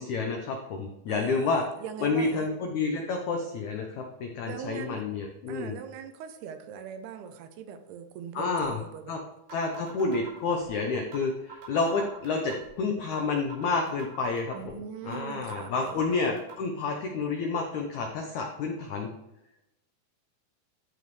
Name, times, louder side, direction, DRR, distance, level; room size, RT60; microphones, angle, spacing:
voice 1, 0.0-1.6 2.0-5.8 8.3-8.8 9.1-9.2 9.5-14.7 15.0-19.1, left 4 dB, 85° left, 2 dB, 1.6 m, -29 dB
voice 2, 1.1-2.5 4.5-5.0 5.5-9.2 14.5-16.1, right 8 dB, 85° right, 8 dB, 2.7 m, -41 dB
sound 1, 8.6-8.7 9.1-9.2 9.5-10.7 11.1-11.2 11.5-12.7 13.1-13.2 13.5-14.7 15.1-15.2 15.5-16.5, right 8 dB, 70° right, 4.4 m, -44 dB
13.0 x 5.1 x 3.1 m, 0.91 s
omnidirectional pair, 4.7 m